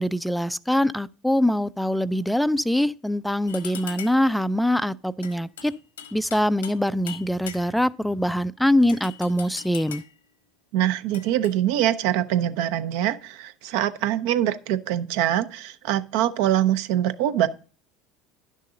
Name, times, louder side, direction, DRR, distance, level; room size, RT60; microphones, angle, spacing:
voice 1, 0.0-5.7 6.1-10.0, left 1 dB, ahead, 0.4 m, -23 dB
sound 1, 3.5-4.3 5.2-6.8 7.1-7.9 8.9-10.2 11.1-11.5, left 8 dB, 85° left, 1.1 m, -40 dB
voice 2, 10.7-17.5, right 12 dB, 65° right, 0.7 m, -24 dB
11.0 x 6.5 x 3.8 m
hypercardioid pair, 75°, 0 cm